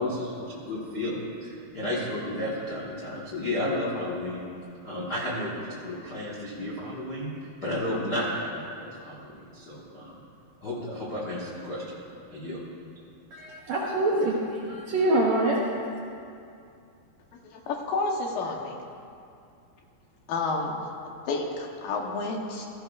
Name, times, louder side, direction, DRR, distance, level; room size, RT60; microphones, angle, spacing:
voice 1, 0.0-4.4 4.8-10.2 10.6-11.9 12.3-12.6, left 1 dB, 55° left, -7 dB, 1.1 m, -32 dB
voice 2, 13.3-15.6, right 2 dB, 70° right, -4 dB, 1.8 m, -25 dB
voice 3, 17.5-18.8 20.3-20.8 21.3-22.7, left 3 dB, 75° left, 1 dB, 2.7 m, -30 dB
16.5 x 14.5 x 2.4 m, 2.5 s
omnidirectional pair, 4.3 m